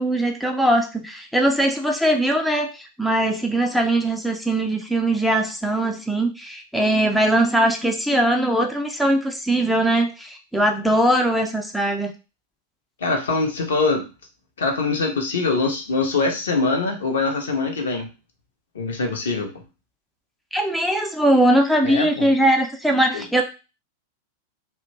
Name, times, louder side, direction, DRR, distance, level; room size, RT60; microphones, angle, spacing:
voice 1, 0.0-12.1 20.5-23.4, right 1 dB, ahead, 2 dB, 0.4 m, -20 dB
voice 2, 13.0-14.1 14.6-18.1 18.7-19.5 21.8-22.3 23.1-23.2, left 3 dB, 65° left, 2 dB, 0.6 m, -23 dB
2.5 x 2.1 x 2.9 m, 0.29 s
figure-of-eight pair, 90°, 0 cm